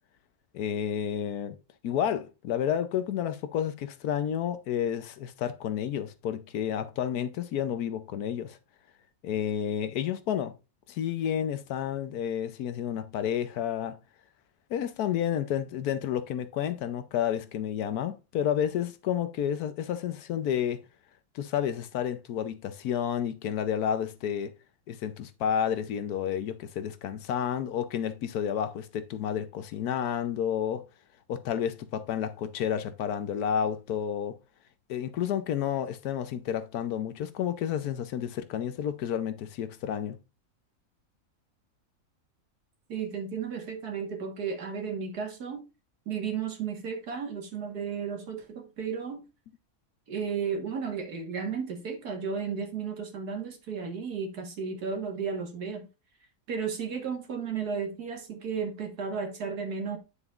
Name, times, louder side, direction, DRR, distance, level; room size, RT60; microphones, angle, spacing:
voice 1, 0.5-1.6 1.8-8.6 9.2-10.5 10.9-14.0 14.7-20.8 21.3-24.5 24.9-30.8 31.3-34.4 34.9-40.2, left 9 dB, 80° left, 1.2 m, -30 dB
voice 2, 42.9-45.6 46.1-49.2 50.1-55.9 56.5-60.0, right 6 dB, 85° right, 2.1 m, -34 dB
9.0 x 6.8 x 2.4 m
omnidirectional pair, 1.6 m